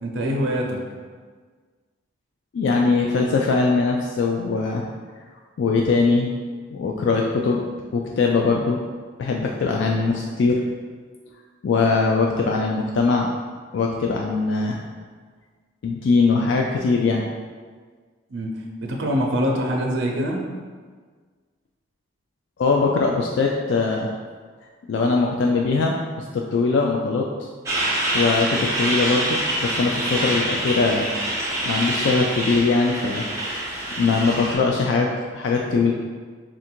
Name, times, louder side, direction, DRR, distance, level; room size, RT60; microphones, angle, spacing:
voice 1, 0.0-0.8 18.3-18.5 18.8-20.4, equal, 80° right, 1 dB, 0.6 m, -24 dB
voice 2, 2.5-4.8 5.6-6.3 6.7-7.7 7.9-8.8 9.2-10.6 11.6-13.3 13.7-14.8 15.8-17.2 22.6-24.1 24.9-27.3 28.1-31.1 31.7-33.2 34.0-35.9, left 4 dB, 70° left, 0 dB, 0.3 m, -21 dB
Truck, 27.7-34.6, right 1 dB, 15° right, 0.7 m, -25 dB
3.6 x 2.5 x 4.3 m, 1.5 s
head